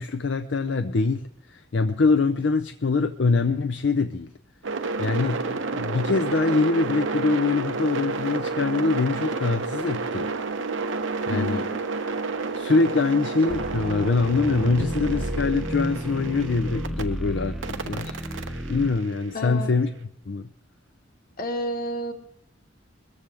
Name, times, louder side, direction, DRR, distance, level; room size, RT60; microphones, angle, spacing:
voice 1, 0.0-4.3 5.0-10.3 11.3-11.6 12.5-18.2 18.7-19.9 20.3-20.5, left 4 dB, 70° left, 9 dB, 0.6 m, -24 dB
sound 1, 4.6-17.0 17.6-19.7, right 3 dB, 85° right, 1.0 m, -30 dB
voice 2, 11.3-11.8 19.3-19.7 21.4-22.1, left 1 dB, 50° left, 4 dB, 1.8 m, -30 dB
sound 2, 13.5-18.9, equal, ahead, 0.8 m, -32 dB
21.5 x 14.5 x 3.5 m, 0.71 s
head